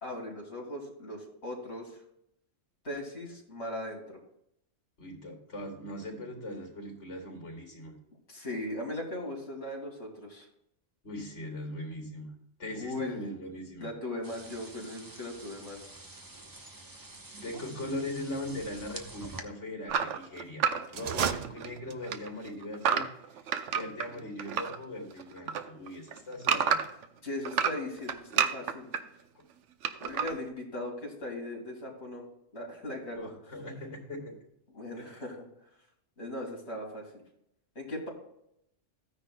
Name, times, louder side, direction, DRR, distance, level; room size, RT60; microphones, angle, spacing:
voice 1, 0.0-2.0 2.8-4.2 8.3-10.5 12.7-13.2 13.8-15.8 27.2-28.9 30.0-32.3 32.5-33.3 34.7-35.5 36.2-37.2 37.7-38.1, left 1 dB, 65° left, -1 dB, 3.0 m, -38 dB
voice 2, 5.0-8.0 11.0-12.3 12.6-13.9 17.4-23.4 23.7-26.8 29.3-29.4 33.1-34.3 35.0-35.2, left 1 dB, 90° left, 0 dB, 3.1 m, -40 dB
sound 1, 14.2-19.4, right 2 dB, 20° right, 0.8 m, -47 dB
sound 2, 19.9-21.8 22.0-24.8 25.1-27.0 27.4-29.0 29.8-30.3, right 7 dB, 85° right, 1.0 m, -30 dB
sound 3, 20.9-22.3, right 8 dB, 65° right, 0.4 m, -34 dB
14.5 x 9.8 x 2.2 m, 0.77 s
omnidirectional pair, 1.2 m